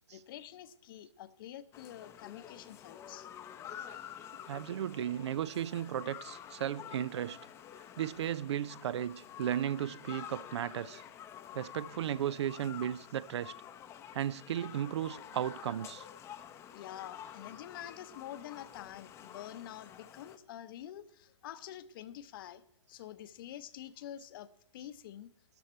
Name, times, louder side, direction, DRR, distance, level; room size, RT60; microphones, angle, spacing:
voice 1, 0.1-3.4 16.7-22.6 22.9-25.3, left 11 dB, 45° left, 0.8 m, -47 dB
sound 1, 1.7-20.4, left 10 dB, 15° left, 0.7 m, -49 dB
voice 2, 4.5-7.4 8.0-11.0 11.5-13.5 14.1-16.0, right 10 dB, 60° right, 0.5 m, -35 dB
13.0 x 11.5 x 4.4 m
hypercardioid pair, 145°, 16 cm